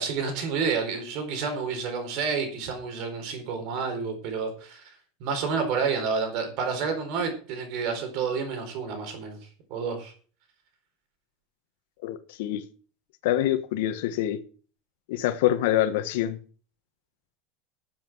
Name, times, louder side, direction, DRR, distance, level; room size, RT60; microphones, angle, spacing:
voice 1, 0.0-4.8 5.2-9.4 9.7-10.1, right 5 dB, 50° right, 4.4 m, -29 dB
voice 2, 12.0-12.6 13.2-14.4 15.1-16.4, left 12 dB, 70° left, 1.3 m, -25 dB
13.5 x 7.4 x 6.2 m
supercardioid pair, 165°, 0 cm